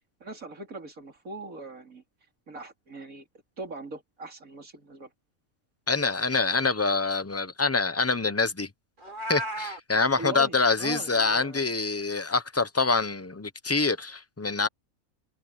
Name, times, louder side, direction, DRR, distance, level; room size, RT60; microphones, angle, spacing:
voice 1, 0.2-2.0 2.5-3.2 3.6-5.1 10.1-11.6, right 2 dB, 75° right, 4.1 m, -40 dB
voice 2, 5.9-8.7 9.3-14.7, left 4 dB, 15° left, 0.6 m, -25 dB
Meow, 9.0-9.8, right 1 dB, 35° right, 3.4 m, -34 dB
omnidirectional pair, 1.5 m